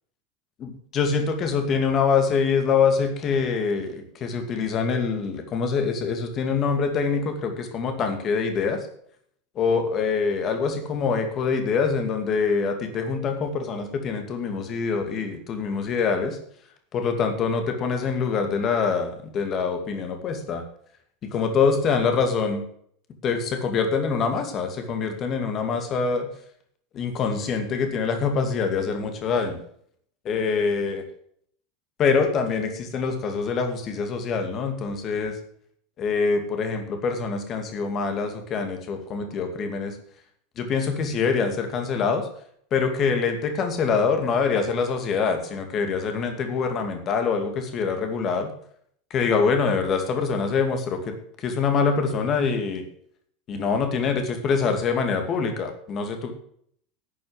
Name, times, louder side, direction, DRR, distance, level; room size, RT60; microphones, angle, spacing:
voice 1, 0.6-8.8 9.6-16.4 16.9-20.6 21.2-22.6 23.2-26.3 26.9-29.6 30.2-31.0 32.0-35.4 36.0-39.9 40.6-42.3 42.7-48.5 49.1-51.1 51.4-52.8 53.5-56.3, left 5 dB, 30° left, 6 dB, 2.4 m, -25 dB
12.0 x 7.1 x 7.9 m, 0.64 s
supercardioid pair, 160°, 0 cm